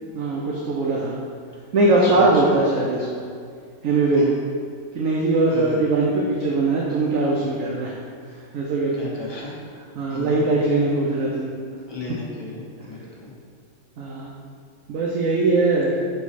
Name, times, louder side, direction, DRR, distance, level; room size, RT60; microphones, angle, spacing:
voice 1, 0.0-1.2 1.7-3.2 3.8-4.2 4.9-7.9 8.5-9.0 10.0-11.5 14.0-14.3 14.9-16.0, right 2 dB, 70° right, -3 dB, 1.2 m, -21 dB
voice 2, 2.0-2.6 4.1-4.3 5.5-5.8 8.9-9.6 10.1-10.6 11.9-13.3, left 3 dB, 20° left, -5 dB, 1.2 m, -34 dB
6.8 x 4.6 x 4.2 m, 2.2 s
omnidirectional pair, 1.5 m